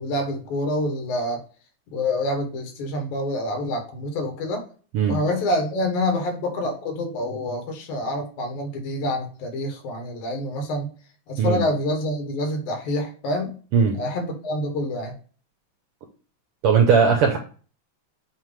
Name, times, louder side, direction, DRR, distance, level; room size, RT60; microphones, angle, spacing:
voice 1, 0.0-1.4 1.9-4.7 5.1-10.9 11.3-13.5 14.0-15.1, left 1 dB, 85° left, 4 dB, 2.9 m, -27 dB
voice 2, 16.6-17.4, right 6 dB, 75° right, 3 dB, 1.3 m, -18 dB
7.6 x 2.7 x 4.9 m, 0.39 s
omnidirectional pair, 3.3 m